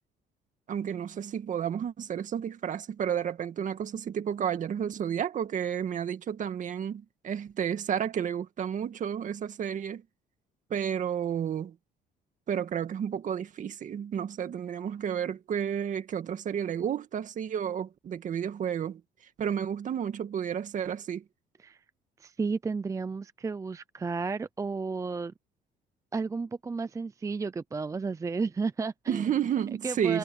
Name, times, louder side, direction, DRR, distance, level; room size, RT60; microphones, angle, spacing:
voice 1, 0.7-10.0 10.7-11.8 12.5-19.0 19.4-21.2 29.1-30.2, right 8 dB, 50° right, 2.0 m, -31 dB
voice 2, 22.2-25.3 26.1-29.2 29.8-30.2, right 4 dB, 20° right, 0.5 m, -32 dB
cardioid pair, 110°, 17 cm